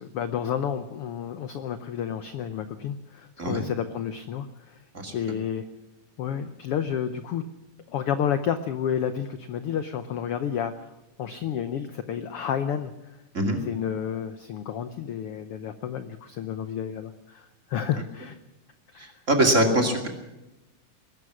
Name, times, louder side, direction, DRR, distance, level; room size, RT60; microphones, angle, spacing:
voice 1, 0.0-4.8 5.1-5.7 6.2-7.5 7.9-10.9 11.2-13.2 13.7-18.4 18.9-19.1 19.7-19.8, left 8 dB, 80° left, 10 dB, 1.3 m, -30 dB
voice 2, 19.0-20.1, right 1 dB, 25° right, 3 dB, 2.5 m, -23 dB
21.5 x 12.5 x 9.6 m, 1.0 s
omnidirectional pair, 3.7 m